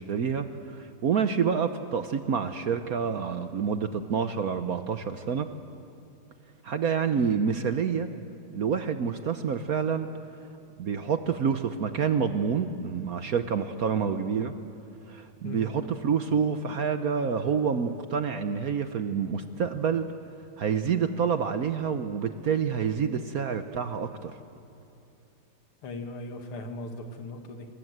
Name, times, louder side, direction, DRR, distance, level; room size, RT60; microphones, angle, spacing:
voice 1, 0.0-5.5 6.6-8.1 8.5-10.1 10.8-14.5 15.1-20.1 20.6-24.3, right 6 dB, 60° right, 9 dB, 1.0 m, -28 dB
voice 2, 25.8-27.7, left 2 dB, 85° left, 5 dB, 2.7 m, -38 dB
27.0 x 20.0 x 8.1 m, 2.8 s
omnidirectional pair, 2.3 m